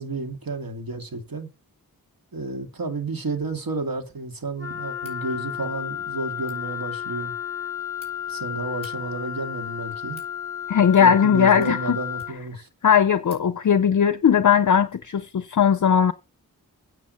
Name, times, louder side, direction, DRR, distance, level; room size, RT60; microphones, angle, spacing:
voice 1, 0.0-1.5 2.3-7.3 8.3-10.2 11.0-12.7, right 3 dB, 65° right, 2.2 m, -31 dB
Wind instrument woodwind instrument, 4.6-12.4, left 10 dB, 10° left, 0.9 m, -33 dB
Wind instrument woodwind instrument 2, 4.6-12.5, left 7 dB, 35° right, 2.2 m, -43 dB
sound 1, 5.0-5.2 6.3-6.6 7.6-8.1 8.7-8.9 9.7-10.3 10.9-11.3 11.6-12.5 12.9-13.0 13.2-13.5, right 1 dB, 15° right, 4.7 m, -50 dB
voice 2, 10.7-12.0 12.8-16.1, left 7 dB, 55° left, 0.5 m, -18 dB
9.3 x 6.2 x 6.8 m
wide cardioid pair, 70°, 37 cm